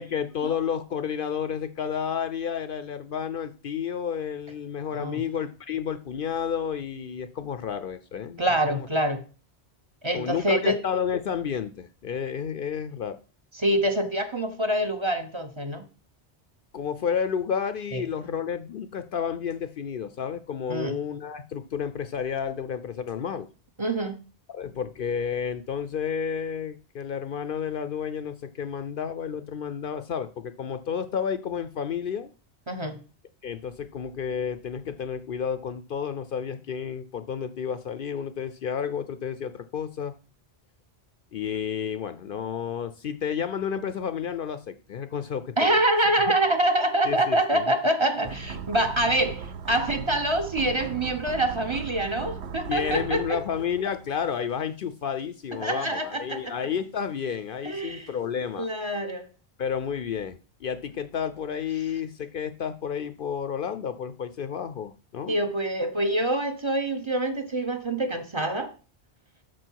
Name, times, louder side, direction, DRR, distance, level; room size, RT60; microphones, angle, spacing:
voice 1, 0.0-8.9 10.1-13.2 16.7-23.5 24.5-32.3 33.4-40.1 41.3-45.8 46.3-46.4 47.1-47.7 52.7-58.7 59.6-65.4, left 7 dB, 60° left, 0.7 m, -31 dB
voice 2, 4.9-5.2 8.4-9.2 10.0-10.8 13.5-15.8 17.9-18.0 20.7-21.0 23.8-24.2 32.7-33.0 45.6-53.4 55.6-56.5 57.6-58.1 58.6-59.3 65.3-68.7, right 1 dB, 30° right, 0.9 m, -25 dB
sound 1, 48.2-54.3 54.6-54.7, right 6 dB, 80° right, 1.0 m, -38 dB
12.5 x 4.7 x 4.6 m
omnidirectional pair, 1.1 m